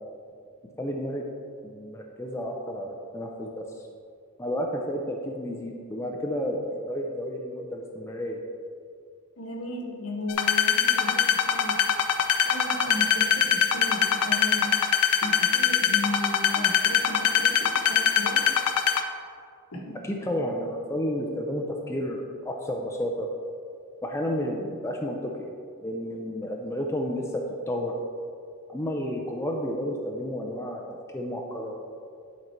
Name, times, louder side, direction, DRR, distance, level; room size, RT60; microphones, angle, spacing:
voice 1, 0.8-1.2 1.6-3.6 4.4-8.4 20.0-23.3 24.0-25.5 25.8-27.9 28.7-30.8 31.1-31.8, equal, 10° left, 0 dB, 0.5 m, -31 dB
voice 2, 9.4-11.8 12.4-14.8 15.2-18.5 19.7-20.0, left 1 dB, 70° left, 1 dB, 1.3 m, -35 dB
sound 1, 10.3-19.0, left 8 dB, 85° left, 0.6 m, -22 dB
10.5 x 4.0 x 4.4 m, 2.3 s
head